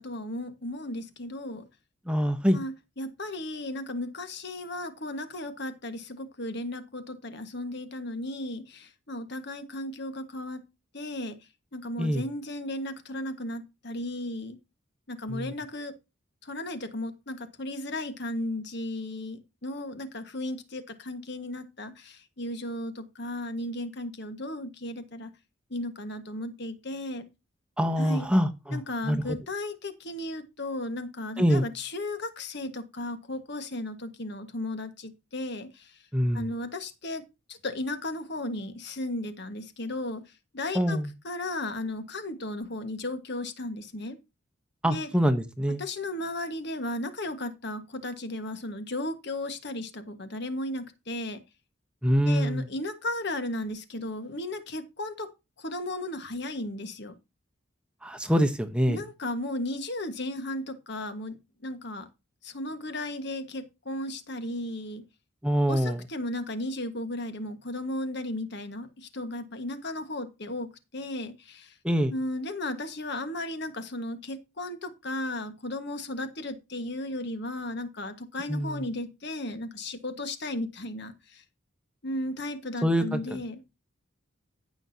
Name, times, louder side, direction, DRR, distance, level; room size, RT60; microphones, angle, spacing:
voice 1, 0.0-1.6 2.5-10.6 10.9-11.3 11.7-14.6 15.1-15.9 16.4-25.3 25.7-27.3 28.0-28.3 28.7-36.0 36.3-37.2 37.5-40.2 40.5-41.0 41.2-44.2 44.9-45.1 45.8-51.4 52.2-55.3 55.6-57.1 58.9-61.4 61.6-62.1 62.4-65.0 65.7-71.8 72.1-81.4 82.0-83.6, left 1 dB, 55° left, 1.5 m, -35 dB
voice 2, 2.1-2.6 12.0-12.2 15.3-15.5 27.8-29.4 31.4-31.6 36.1-36.5 40.7-41.1 44.8-45.8 52.0-52.6 58.0-59.0 65.4-66.0 71.8-72.1 78.5-78.8 82.8-83.4, equal, 5° right, 0.9 m, -25 dB
16.0 x 6.2 x 2.8 m
head